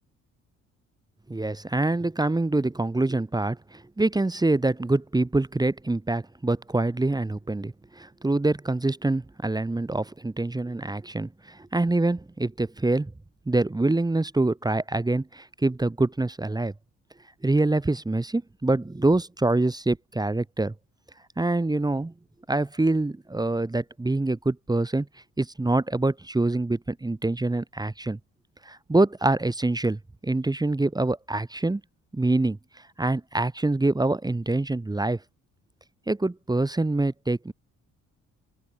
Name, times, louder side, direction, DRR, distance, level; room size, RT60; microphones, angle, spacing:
voice 1, 1.3-13.1 13.5-16.7 17.4-20.7 21.4-22.1 22.5-25.1 25.4-28.2 28.6-31.8 32.1-32.6 33.0-35.2 36.1-37.5, right 2 dB, 15° right, 1.5 m, -25 dB
open air
cardioid pair, 90°, 30 cm